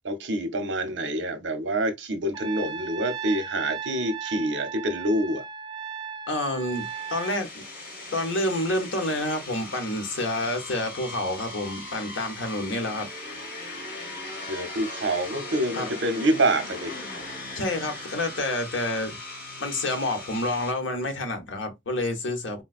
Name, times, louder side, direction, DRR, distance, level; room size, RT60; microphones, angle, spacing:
voice 1, 0.0-5.4 14.5-16.9, right 1 dB, 70° right, 0.7 m, -26 dB
Trumpet, 2.3-7.4, right 7 dB, 25° right, 0.3 m, -36 dB
voice 2, 6.3-7.6 8.1-13.1 15.7-15.9 17.5-19.2 19.6-22.6, left 1 dB, 80° left, 0.9 m, -28 dB
sound 1, 6.7-20.7, left 2 dB, 55° left, 1.3 m, -39 dB
3.8 x 2.2 x 2.4 m
head